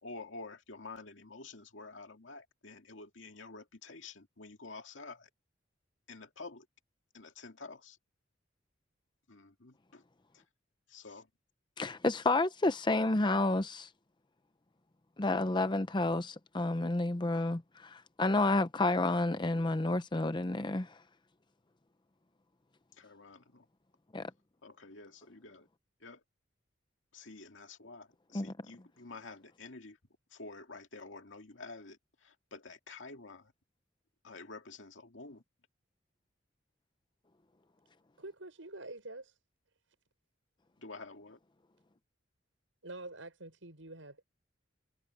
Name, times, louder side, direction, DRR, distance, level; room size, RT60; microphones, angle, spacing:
voice 1, 0.0-5.3 6.1-6.7 7.1-8.0 9.3-10.0 10.3-10.4 10.9-11.3 22.9-23.7 24.6-25.7 26.0-26.2 27.1-30.0 30.3-33.5 34.2-35.4 40.8-41.4, left 3 dB, 75° left, 2.2 m, -49 dB
voice 2, 11.8-13.9 15.2-21.0 24.1-24.3 28.3-28.5, left 2 dB, 25° left, 0.7 m, -30 dB
voice 3, 38.2-39.4 42.8-44.2, right 2 dB, 85° right, 6.8 m, -46 dB
head